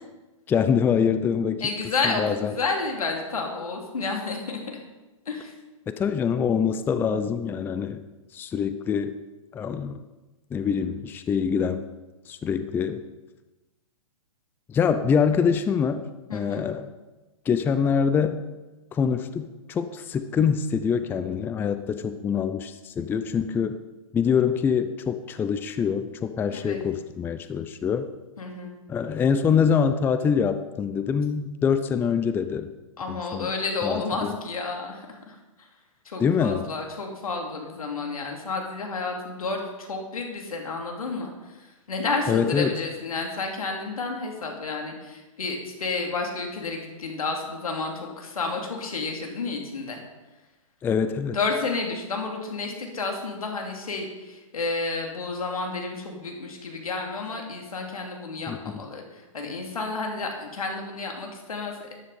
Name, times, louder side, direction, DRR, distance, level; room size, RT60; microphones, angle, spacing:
voice 1, 0.5-1.6 2.0-2.5 5.9-8.0 8.3-9.2 9.5-10.0 10.5-11.9 12.3-13.0 14.7-16.0 16.3-16.9 17.5-18.4 18.9-23.7 24.1-28.1 28.9-32.7 33.1-33.5 33.8-34.3 36.2-36.7 42.3-42.7 50.8-51.4 58.5-58.8, left 6 dB, 10° left, 11 dB, 0.5 m, -24 dB
voice 2, 1.6-4.6 5.2-5.5 16.3-16.6 26.5-26.8 28.4-28.7 33.0-35.7 36.0-50.0 51.3-61.9, left 3 dB, 85° left, 2 dB, 3.0 m, -31 dB
13.0 x 10.0 x 4.3 m, 1.1 s
hypercardioid pair, 130°, 18 cm